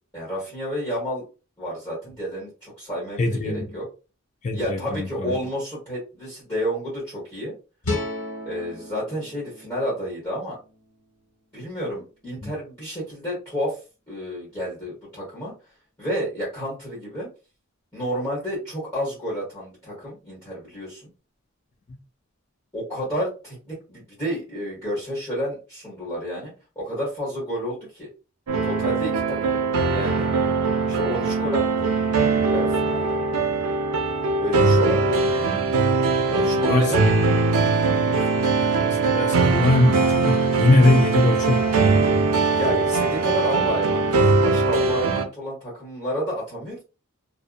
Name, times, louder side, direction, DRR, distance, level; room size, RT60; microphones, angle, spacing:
voice 1, 0.1-1.2 1.6-3.9 4.5-7.6 8.4-10.6 11.5-13.8 14.1-15.5 16.0-17.3 17.9-21.1 22.7-28.1 28.6-29.6 29.9-30.3 30.8-31.9 32.5-33.2 34.4-35.6 36.3-37.1 42.5-46.8, equal, 15° left, 1.2 m, -30 dB
voice 2, 3.2-3.7 4.4-5.4 12.4-12.5 36.4-36.9 38.0-41.6, left 2 dB, 35° left, 0.3 m, -21 dB
sound 1, 7.8-11.0, left 2 dB, 80° left, 1.2 m, -34 dB
sound 2, 28.5-45.2, right 3 dB, 90° right, 0.5 m, -21 dB
2.6 x 2.1 x 2.4 m
head